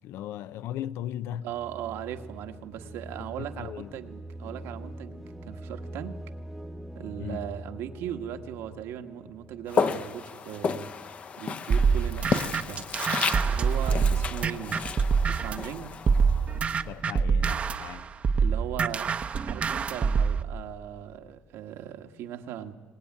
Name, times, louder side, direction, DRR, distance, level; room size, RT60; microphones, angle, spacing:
voice 1, 0.0-1.5 3.6-3.9 7.2-7.4 13.9-14.2 16.8-18.1, left 11 dB, 70° left, 0.7 m, -37 dB
voice 2, 1.4-6.2 6.9-10.9 11.4-12.9 13.5-14.9 15.2-15.9 18.4-19.1 19.4-22.7, right 10 dB, 75° right, 1.6 m, -38 dB
sound 1, 1.5-11.3, right 1 dB, ahead, 0.9 m, -44 dB
Walk footsteps, 9.7-16.8, left 5 dB, 30° left, 0.8 m, -32 dB
sound 2, 11.7-15.7 16.1-20.4, right 5 dB, 30° right, 0.8 m, -25 dB
24.0 x 19.5 x 9.7 m
cardioid pair, 155°, 4 cm